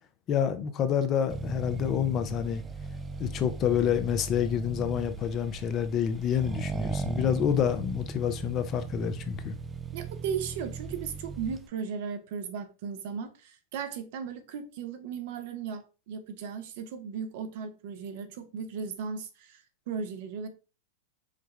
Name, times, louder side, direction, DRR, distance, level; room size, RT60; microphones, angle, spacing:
voice 1, 0.3-2.6 3.2-9.5, left 9 dB, 35° left, 0.5 m, -28 dB
Accelerating revving vroom, 1.3-11.7, right 4 dB, 15° right, 0.4 m, -37 dB
voice 2, 9.9-20.5, right 6 dB, 60° right, 0.7 m, -36 dB
4.9 x 2.3 x 3.1 m
hypercardioid pair, 105°, 0 cm